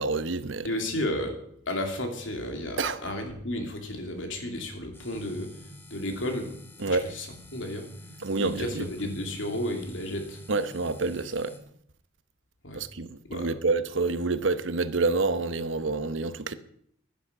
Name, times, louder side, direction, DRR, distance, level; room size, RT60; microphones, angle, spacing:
voice 1, 0.0-0.7 2.8-3.0 6.8-7.1 8.2-8.9 10.5-11.5 12.7-16.5, right 3 dB, 80° right, 0.9 m, -28 dB
voice 2, 0.6-1.4 1.7-6.5 6.8-7.9 8.4-10.4 12.6-12.8 13.2-13.5, left 1 dB, 85° left, 2.8 m, -33 dB
sound 1, 4.9-11.6, left 1 dB, 10° left, 1.6 m, -49 dB
10.5 x 10.0 x 7.2 m
head